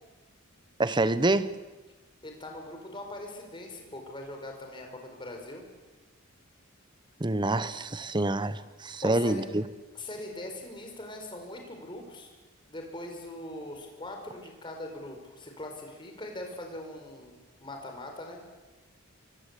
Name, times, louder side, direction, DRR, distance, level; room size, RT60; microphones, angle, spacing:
voice 1, 0.8-1.5 7.2-9.6, right 2 dB, 20° right, 14 dB, 0.9 m, -27 dB
voice 2, 2.2-5.6 9.0-9.4 9.9-12.3 12.7-18.4, left 1 dB, 20° left, 3 dB, 5.2 m, -41 dB
25.5 x 24.0 x 8.4 m, 1.2 s
head